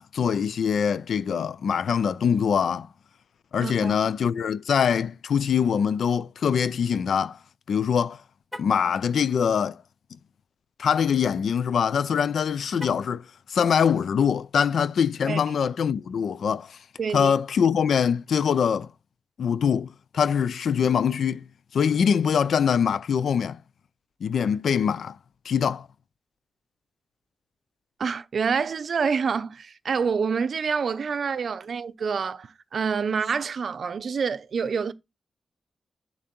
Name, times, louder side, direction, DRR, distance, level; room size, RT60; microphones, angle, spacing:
voice 1, 0.0-2.9 3.5-7.4 7.7-8.2 8.6-9.8 10.8-16.8 17.1-18.9 19.4-21.4 21.7-23.6 24.2-25.2 25.4-25.9, left 7 dB, 75° left, 0.5 m, -23 dB
voice 2, 3.6-4.0 15.3-15.4 17.0-17.3 28.0-34.9, right 6 dB, 55° right, 0.7 m, -27 dB
Car, 8.4-8.9 12.7-13.2, equal, 5° left, 0.8 m, -41 dB
11.0 x 4.0 x 4.4 m
wide cardioid pair, 155°, 0 cm